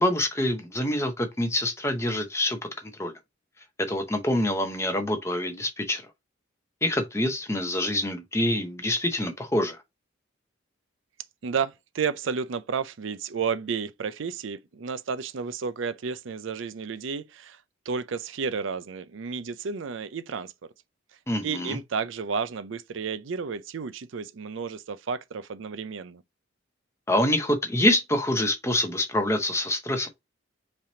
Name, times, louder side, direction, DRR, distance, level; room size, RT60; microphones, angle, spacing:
voice 1, 0.0-2.6 3.0-3.1 3.9-6.0 6.8-9.8 21.3-21.8 27.1-30.1, left 1 dB, 15° left, 0.8 m, -26 dB
voice 2, 11.4-17.6 17.9-20.7 21.4-26.2, right 5 dB, 70° right, 0.5 m, -32 dB
5.6 x 3.4 x 2.7 m
head